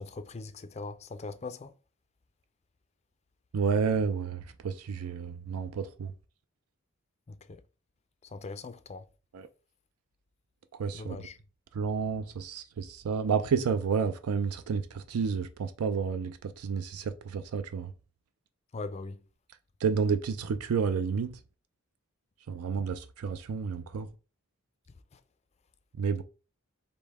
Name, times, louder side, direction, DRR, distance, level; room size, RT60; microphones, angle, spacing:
voice 1, 0.0-1.7 7.5-7.6 8.3-9.0 10.9-11.4 18.7-19.2, left 3 dB, 30° left, 0.4 m, -40 dB
voice 2, 3.5-6.1 9.3-9.5 10.8-11.2 11.7-17.9 19.8-21.4 22.5-24.1 26.0-26.2, right 6 dB, 85° right, 0.4 m, -30 dB
5.2 x 2.1 x 4.6 m
head